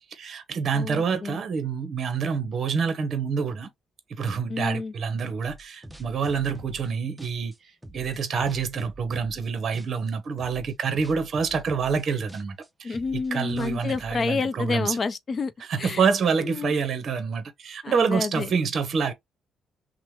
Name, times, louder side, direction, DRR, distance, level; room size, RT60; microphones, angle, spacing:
voice 1, 0.0-3.7 4.1-13.0 13.3-15.0 15.7-19.1, right 5 dB, 55° right, 0.7 m, -27 dB
voice 2, 0.7-1.4 4.5-4.9 12.8-15.5 15.8-16.0 16.4-16.7 17.8-18.5, left 4 dB, 40° left, 0.4 m, -29 dB
sound 1, 5.5-6.9 7.2-9.5 9.7-10.1 10.4-14.2, right 1 dB, 10° right, 0.6 m, -45 dB
2.9 x 2.0 x 3.0 m
cardioid pair, 90°, 0 cm